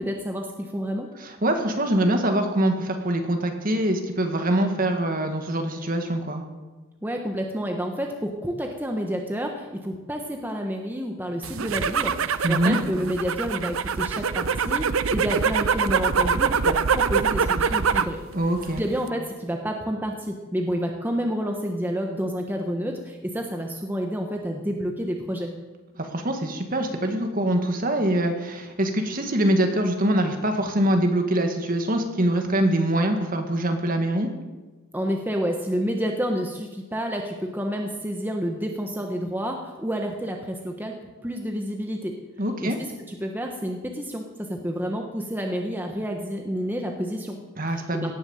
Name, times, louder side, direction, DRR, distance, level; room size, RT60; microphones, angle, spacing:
voice 1, 0.0-1.1 7.0-18.2 18.8-25.5 34.9-42.1 42.6-42.7 43.0-47.4 47.7-48.1, equal, 10° right, 2 dB, 1.2 m, -29 dB
voice 2, 1.2-6.4 12.4-12.8 18.3-18.8 26.0-34.3 42.4-42.8 47.6-48.1, right 1 dB, 40° right, 5 dB, 1.9 m, -24 dB
sound 1, 11.4-18.2 18.5-19.1, right 6 dB, 65° right, 0.6 m, -24 dB
17.5 x 11.5 x 7.2 m, 1.2 s
head